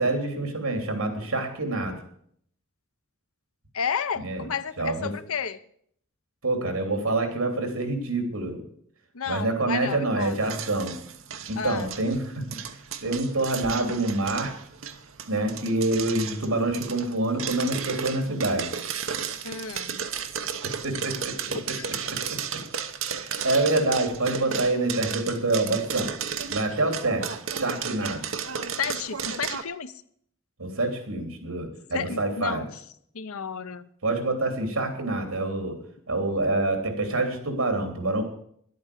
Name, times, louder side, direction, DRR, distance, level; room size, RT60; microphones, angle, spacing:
voice 1, 0.0-2.0 4.2-4.4 4.8-5.1 6.4-8.6 9.3-10.9 11.5-12.4 13.0-14.5 15.3-18.7 20.6-21.6 22.1-22.4 23.2-26.1 26.5-28.2 30.6-32.6 34.0-35.8 36.1-38.2, right 2 dB, 80° right, 5 dB, 3.1 m, -26 dB
voice 2, 3.7-5.6 9.1-10.5 11.6-11.9 19.4-20.0 21.5-22.0 28.8-29.9 31.9-32.8 33.1-33.9, left 6 dB, 80° left, 12 dB, 0.8 m, -32 dB
sound 1, 10.2-29.6, right 7 dB, 65° right, 1.0 m, -34 dB
11.5 x 8.6 x 8.5 m, 0.66 s
head